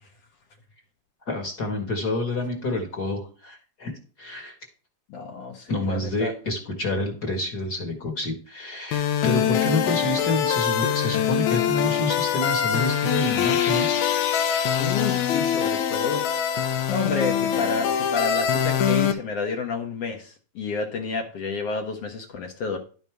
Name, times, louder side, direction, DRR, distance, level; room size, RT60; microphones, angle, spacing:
voice 1, 1.3-3.9 4.2-4.5 5.7-13.9 15.3-15.4, left 2 dB, 40° left, 2 dB, 1.8 m, -28 dB
voice 2, 5.1-6.3 14.8-16.2 16.5-16.6 16.9-22.8, left 4 dB, 60° left, 2 dB, 2.0 m, -30 dB
sound 1, 8.9-19.1, left 9 dB, 75° left, 2.3 m, -23 dB
11.5 x 5.4 x 4.6 m, 0.38 s
omnidirectional pair, 3.5 m